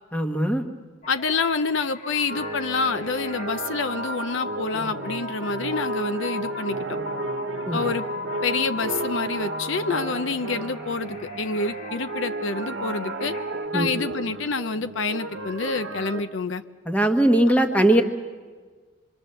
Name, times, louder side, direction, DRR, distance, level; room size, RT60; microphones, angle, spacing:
voice 1, 0.1-0.6 7.6-7.8 13.7-14.0 16.8-18.0, right 1 dB, 5° left, 5 dB, 1.3 m, -20 dB
sound 1, 1.0-13.7, left 3 dB, 45° left, 2.2 m, -38 dB
voice 2, 1.1-6.8 7.7-8.1 8.4-13.3 13.7-16.6, left 4 dB, 70° left, 10 dB, 0.7 m, -27 dB
sound 2, 2.3-16.2, right 2 dB, 65° right, 1.1 m, -33 dB
27.0 x 24.0 x 6.8 m, 1.5 s
head